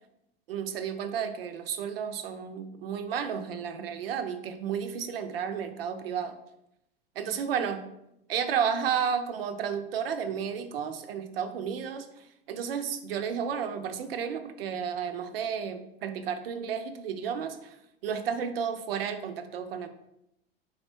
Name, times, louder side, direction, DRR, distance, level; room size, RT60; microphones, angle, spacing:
voice 1, 0.5-6.4 7.2-7.8 8.3-17.8 18.0-19.9, right 7 dB, 70° right, 9 dB, 0.5 m, -32 dB
3.8 x 3.0 x 3.4 m, 0.83 s
figure-of-eight pair, 80°, 30 cm